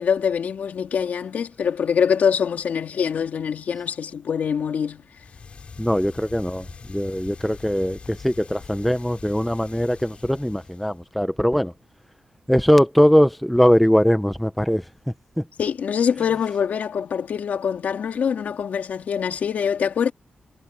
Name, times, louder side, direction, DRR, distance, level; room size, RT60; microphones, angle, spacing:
voice 1, 0.0-5.0 15.6-20.1, left 7 dB, 65° left, 3.1 m, -24 dB
sound 1, 5.2-11.1, left 5 dB, 45° left, 5.6 m, -43 dB
voice 2, 5.8-11.7 12.5-14.8 15.4-15.5, equal, ahead, 0.5 m, -20 dB
wide cardioid pair, 170°, 3 cm